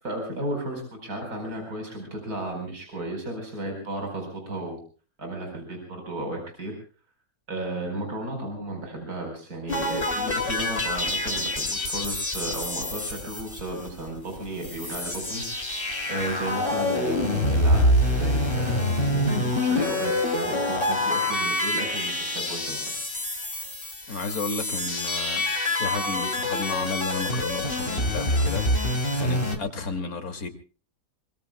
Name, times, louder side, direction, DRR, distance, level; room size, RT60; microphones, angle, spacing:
voice 1, 0.0-4.8 5.2-6.8 7.5-15.6 16.1-18.9 19.1-22.9, right 1 dB, 65° right, 5.0 m, -34 dB
sound 1, 9.7-14.1 14.4-14.5 14.6-29.6, left 1 dB, 35° left, 3.6 m, -26 dB
voice 2, 24.1-30.5, left 4 dB, 65° left, 2.9 m, -33 dB
25.0 x 24.0 x 2.2 m
omnidirectional pair, 1.7 m